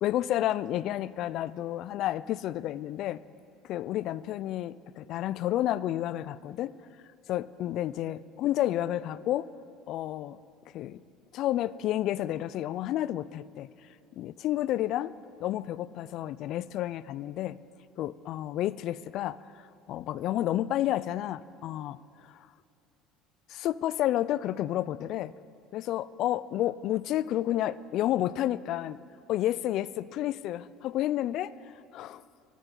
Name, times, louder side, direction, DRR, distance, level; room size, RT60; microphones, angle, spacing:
voice 1, 0.0-3.2 3.6-6.7 7.3-9.5 9.9-10.4 10.7-11.0 11.3-13.7 14.2-15.1 15.4-17.6 18.0-19.4 19.9-22.0 23.5-25.3 25.7-29.0 29.3-31.5 31.9-32.2, left 13 dB, 60° left, 19 dB, 0.4 m, -30 dB
23.0 x 13.0 x 3.9 m, 2.5 s
hypercardioid pair, 75°, 0 cm